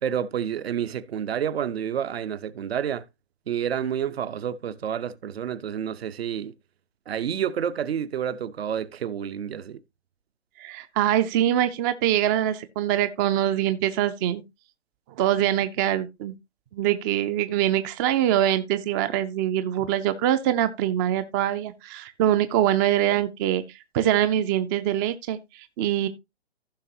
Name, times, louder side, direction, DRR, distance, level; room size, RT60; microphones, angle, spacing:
voice 1, 0.0-3.0 3.5-6.5 7.1-9.8, right 9 dB, 65° right, 1.0 m, -29 dB
voice 2, 10.6-14.4 15.2-16.3 16.7-23.6 23.9-26.1, right 12 dB, 20° right, 0.4 m, -24 dB
15.0 x 5.9 x 2.8 m
hypercardioid pair, 135°, 33 cm